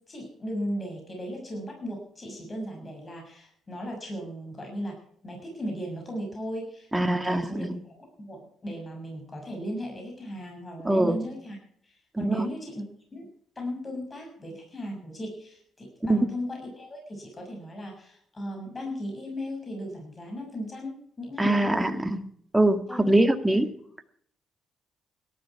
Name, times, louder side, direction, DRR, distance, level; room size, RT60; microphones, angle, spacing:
voice 1, 0.1-5.0 5.2-11.6 11.8-12.8 13.1-13.3 13.5-22.0 22.9-23.1 23.4-23.6, equal, 30° left, 1 dB, 6.6 m, -36 dB
voice 2, 6.9-7.8 10.8-11.2 12.2-12.4 16.1-16.3 21.4-22.2 22.5-23.7, right 1 dB, 10° right, 7 dB, 1.8 m, -23 dB
18.0 x 13.5 x 4.7 m, 0.63 s
cardioid pair, 90°, 0 cm